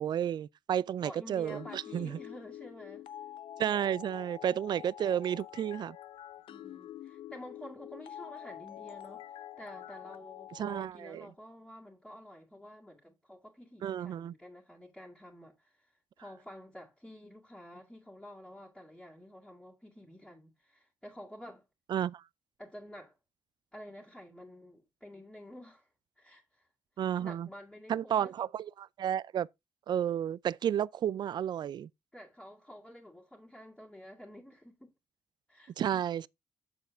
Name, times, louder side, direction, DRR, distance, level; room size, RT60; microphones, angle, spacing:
voice 1, 0.0-2.2 3.6-6.0 10.6-11.3 13.8-14.3 21.9-22.2 27.0-27.5 27.9-29.5 29.9-31.9 35.8-36.3, right 10 dB, 55° right, 0.3 m, -32 dB
voice 2, 1.0-3.1 3.6-4.1 6.5-15.9 16.2-21.6 22.6-23.2 23.7-25.9 26.2-26.7 27.2-28.3 32.1-34.9 35.5-35.7, left 1 dB, 5° left, 2.2 m, -50 dB
sound 1, 1.5-10.9, left 11 dB, 75° left, 0.7 m, -47 dB
6.9 x 6.9 x 3.4 m
cardioid pair, 100°, 9 cm